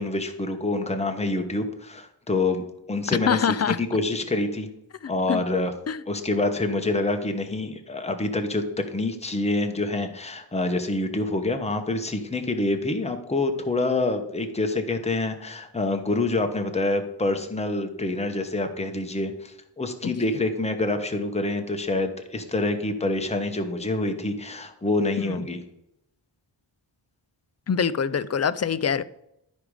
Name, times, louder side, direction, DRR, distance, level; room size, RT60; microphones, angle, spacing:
voice 1, 0.0-4.7 5.1-5.7 6.1-25.6, left 2 dB, 15° left, 1.0 m, -26 dB
voice 2, 3.1-3.8 5.3-5.4 5.9-6.0 25.2-25.4 27.7-29.0, left 7 dB, 35° left, 0.4 m, -24 dB
12.0 x 5.0 x 4.8 m
wide cardioid pair, 75°, 46 cm